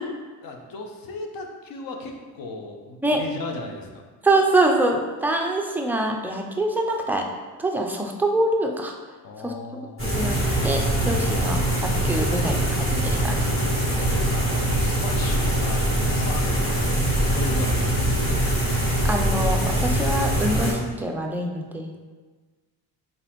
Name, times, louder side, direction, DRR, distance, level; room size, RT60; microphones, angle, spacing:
voice 1, 0.4-4.0 9.2-10.0 13.1-18.3, left 2 dB, 55° left, 2 dB, 0.7 m, -37 dB
voice 2, 4.2-7.3 7.6-8.9 9.4-9.5 10.1-10.4 10.6-13.4 18.5-18.7 19.0-21.9, right 2 dB, 5° right, 1 dB, 0.3 m, -24 dB
sound 1, 10.0-20.7, right 1 dB, 30° left, 1.5 m, -23 dB
3.9 x 3.8 x 3.0 m, 1.4 s
cardioid pair, 110°, 40 cm